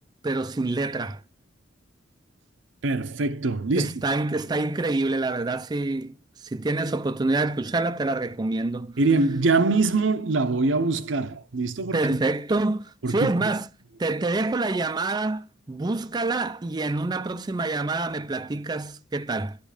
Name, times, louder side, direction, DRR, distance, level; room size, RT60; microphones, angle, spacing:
voice 1, 0.2-1.2 3.7-9.0 11.9-13.7 14.0-19.6, right 2 dB, 20° right, 0.4 m, -27 dB
voice 2, 2.8-4.0 9.0-12.2 13.0-13.5, right 3 dB, 80° right, 0.8 m, -23 dB
11.0 x 5.2 x 4.9 m
head